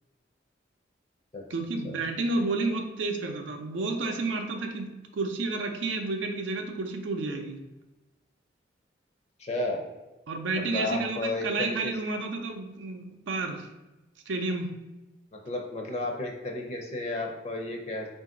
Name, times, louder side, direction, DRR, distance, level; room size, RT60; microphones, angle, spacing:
voice 1, 1.5-7.6 10.3-13.7 14.3-14.8, right 3 dB, 90° right, 4 dB, 0.5 m, -31 dB
voice 2, 9.4-9.9 10.6-11.9 15.4-18.1, left 2 dB, 35° left, 1 dB, 0.5 m, -32 dB
3.9 x 2.6 x 3.7 m, 1.1 s
head